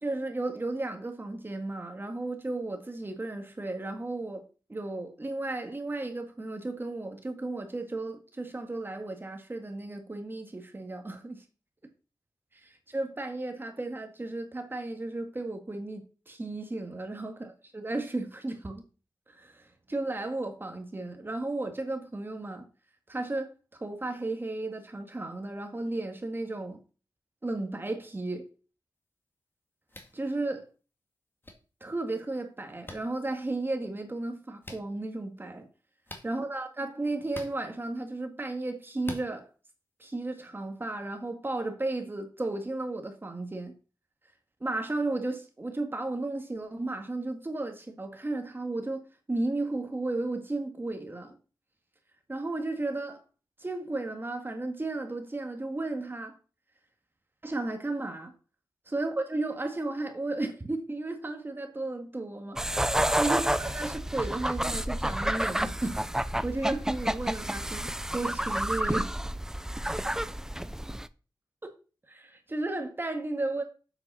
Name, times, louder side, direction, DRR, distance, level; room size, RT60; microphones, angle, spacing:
voice 1, 0.0-4.4 4.7-11.4 12.7-18.8 19.3-22.7 23.1-26.8 27.4-28.5 30.1-30.7 31.8-35.7 36.2-39.5 40.0-43.7 44.6-49.0 49.3-51.4 52.3-53.2 53.6-56.4 57.4-58.3 58.9-62.6 63.2-66.0 66.4-69.1 71.6-71.7 72.1-73.6, right 2 dB, 25° right, 2.0 m, -34 dB
sound 1, 29.9-30.1 31.4-31.5 32.9-33.0 34.6-34.8 36.1-36.3 37.3-37.5 39.0-39.3, left 1 dB, 25° left, 2.0 m, -42 dB
sound 2, 62.6-71.1, right 1 dB, 5° right, 0.5 m, -30 dB
7.9 x 5.7 x 5.7 m
wide cardioid pair, 85°, 8 cm